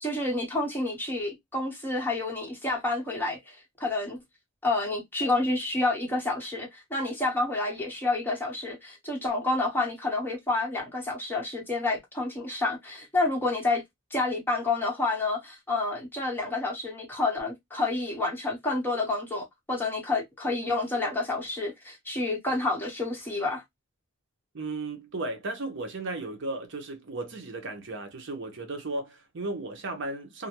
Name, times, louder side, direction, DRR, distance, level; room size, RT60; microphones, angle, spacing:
voice 1, 0.0-4.2 4.6-13.8 14.1-23.6, left 2 dB, 10° left, 0.9 m, -29 dB
voice 2, 24.5-30.5, right 2 dB, 65° right, 0.7 m, -35 dB
2.4 x 2.1 x 2.9 m
head